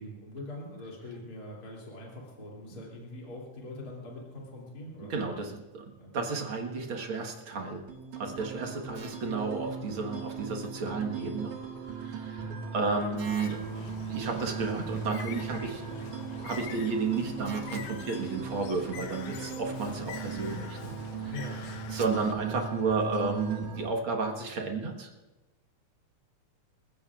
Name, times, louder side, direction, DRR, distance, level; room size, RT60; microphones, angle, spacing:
voice 1, 0.0-5.3 6.0-6.1 8.4-8.7 12.4-12.7 21.3-21.6, left 1 dB, 30° left, -4 dB, 3.2 m, -43 dB
voice 2, 5.1-7.8 8.1-11.6 11.9-15.8 16.4-20.9 21.2-21.3 21.9-25.1, right 4 dB, 50° right, 2 dB, 2.0 m, -32 dB
sound 1, 7.9-23.9, right 5 dB, 80° right, 2.9 m, -39 dB
Bird, 13.2-22.3, left 8 dB, 75° left, 1.9 m, -45 dB
29.5 x 15.0 x 2.5 m, 1.1 s
omnidirectional pair, 3.5 m